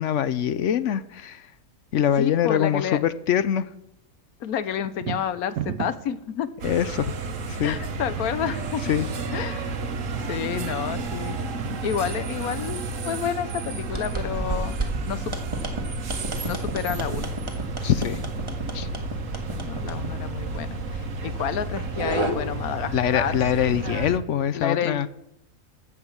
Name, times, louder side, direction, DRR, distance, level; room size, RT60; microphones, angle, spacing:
voice 1, 0.0-1.4 1.9-3.7 6.6-7.1 7.5-7.8 8.9-9.1 17.8-18.2 18.7-18.9 22.9-25.1, left 9 dB, 65° left, 15 dB, 0.9 m, -23 dB
voice 2, 2.2-3.0 4.4-6.5 7.6-8.8 9.3-9.8 10.2-11.4 11.8-14.8 15.0-15.4 16.4-17.3 19.5-23.8 24.5-25.1, left 9 dB, 90° left, 14 dB, 1.3 m, -30 dB
sound 1, 4.8-6.2, right 10 dB, 85° right, 1.2 m, -31 dB
sound 2, 6.6-24.2, right 3 dB, 65° right, 1.5 m, -32 dB
sound 3, 13.8-22.3, right 2 dB, 20° right, 1.7 m, -32 dB
15.5 x 6.2 x 7.3 m, 0.81 s
omnidirectional pair, 1.5 m